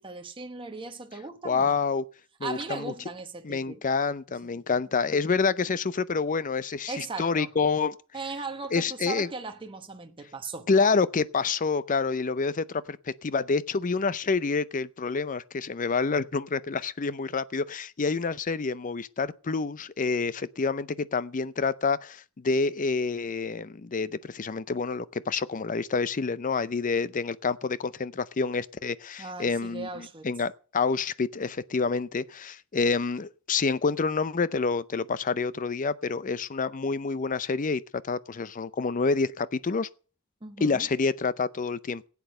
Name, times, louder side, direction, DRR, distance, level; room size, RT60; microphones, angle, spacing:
voice 1, 0.0-1.8 2.4-3.8 4.4-4.8 6.9-7.5 8.1-10.7 29.2-30.3 40.4-40.9, right 3 dB, 25° right, 1.0 m, -38 dB
voice 2, 1.4-2.0 2.4-2.9 3.4-7.9 8.7-9.3 10.7-37.8 38.1-39.9 40.6-42.1, left 4 dB, 40° left, 0.5 m, -28 dB
16.0 x 8.3 x 6.5 m
head